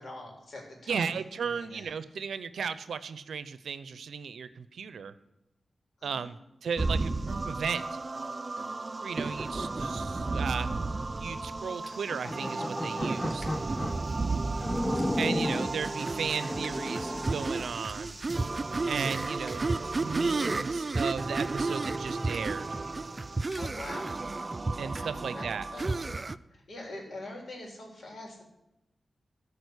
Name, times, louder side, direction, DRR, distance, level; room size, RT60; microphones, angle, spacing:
voice 1, 0.0-1.2 1.4-1.9 6.0-6.3 14.9-15.2 23.6-24.2 25.1-25.5 25.7-26.0 26.7-28.4, left 1 dB, 70° left, 0 dB, 3.8 m, -44 dB
voice 2, 0.9-5.1 6.0-8.0 9.0-10.7 11.2-13.5 15.2-18.2 18.9-19.7 20.0-22.8 24.8-25.7, right 6 dB, 90° right, 14 dB, 0.6 m, -35 dB
sound 1, 6.8-26.4, right 3 dB, 40° right, 0.4 m, -32 dB
sound 2, 11.8-12.8 13.2-13.5 14.1-14.3 14.9-15.5 15.9-16.7 17.0-17.1 17.5-18.1 18.6-19.7 20.0-25.7, right 1 dB, ahead, 4.5 m, -55 dB
sound 3, 11.9-14.0 14.6-15.8 16.3-17.7, left 1 dB, 20° left, 0.6 m, -33 dB
13.5 x 5.0 x 8.1 m, 0.95 s
cardioid pair, 50°, 0 cm